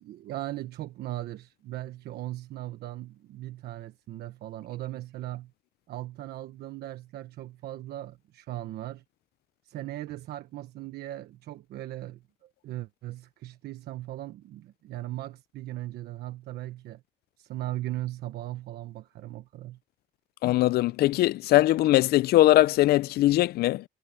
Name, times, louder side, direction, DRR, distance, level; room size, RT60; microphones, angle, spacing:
voice 1, 0.0-5.5 5.9-9.0 9.6-17.0 17.4-19.8, right 15 dB, 75° right, 1.3 m, -38 dB
voice 2, 20.4-23.8, left 15 dB, 70° left, 0.5 m, -21 dB
cardioid pair, 110°, 17 cm